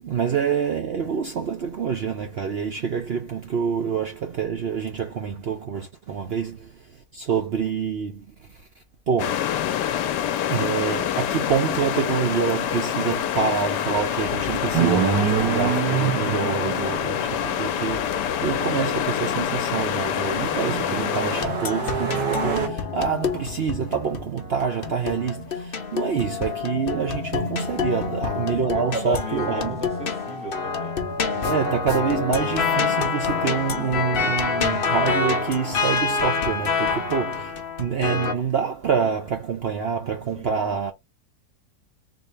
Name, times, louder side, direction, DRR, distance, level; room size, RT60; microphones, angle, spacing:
voice 1, 0.0-6.7 7.1-8.3 9.1-9.5 10.5-29.8 31.3-40.9, right 6 dB, 60° right, 0.7 m, -26 dB
sound 1, 9.2-21.5, left 10 dB, 85° left, 1.2 m, -26 dB
sound 2, 14.7-18.3 19.4-22.7, right 8 dB, 85° right, 1.6 m, -27 dB
sound 3, 21.4-38.3, left 5 dB, 50° left, 0.7 m, -27 dB
voice 2, 27.8-28.1 28.7-31.2 40.3-40.8, right 1 dB, 5° right, 1.4 m, -36 dB
3.9 x 2.6 x 3.2 m
omnidirectional pair, 1.8 m